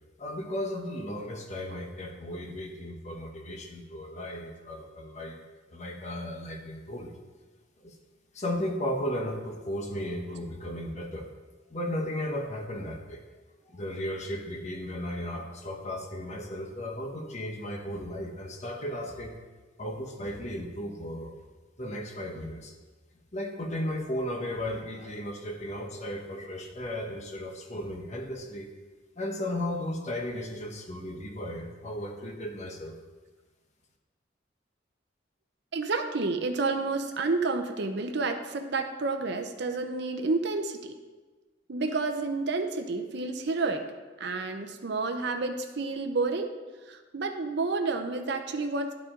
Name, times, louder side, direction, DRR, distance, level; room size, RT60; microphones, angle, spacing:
voice 1, 0.2-5.4 5.7-7.1 7.8-7.9 8.3-11.3 11.7-13.2 13.7-19.3 19.8-21.4 21.8-22.7 23.3-28.7 29.2-33.0, left 1 dB, 40° left, 2 dB, 1.0 m, -35 dB
voice 2, 35.7-40.9 41.7-43.8 44.2-46.6 46.9-48.9, right 3 dB, 60° right, 6 dB, 0.6 m, -30 dB
10.5 x 4.8 x 3.7 m, 1.3 s
head